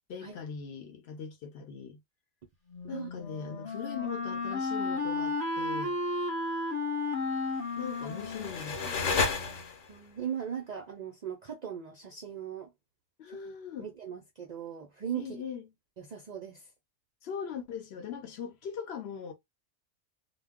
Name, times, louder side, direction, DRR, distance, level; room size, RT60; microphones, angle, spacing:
voice 1, 0.1-2.0 2.9-6.0 7.8-9.1 13.2-13.9 15.1-15.7 17.2-19.3, left 7 dB, 65° left, 0.8 m, -40 dB
Wind instrument woodwind instrument, 2.7-9.6, left 3 dB, 35° left, 0.9 m, -34 dB
sound 1, 7.7-10.1, left 4 dB, 85° left, 1.0 m, -32 dB
voice 2, 9.9-12.7 13.3-13.5 13.8-15.4 16.0-16.7, right 8 dB, 60° right, 0.4 m, -39 dB
2.2 x 2.1 x 3.5 m
omnidirectional pair, 1.2 m